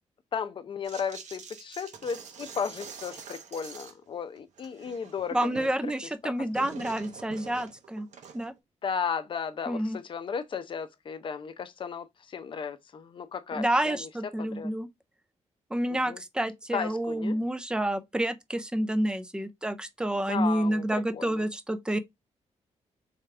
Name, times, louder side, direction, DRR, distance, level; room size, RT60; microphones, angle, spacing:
voice 1, 0.3-5.7 6.2-6.6 8.8-14.1 14.4-14.7 15.9-16.2 16.7-17.4 20.3-21.5, left 6 dB, 45° left, 0.6 m, -35 dB
sound 1, 0.8-4.0 4.4-5.8 6.0-8.6, right 6 dB, 75° right, 0.9 m, -46 dB
voice 2, 5.3-8.1 8.3-8.5 9.7-10.0 13.5-14.9 15.7-22.0, right 1 dB, 5° right, 0.5 m, -29 dB
3.5 x 3.4 x 3.2 m
cardioid pair, 120°, 12 cm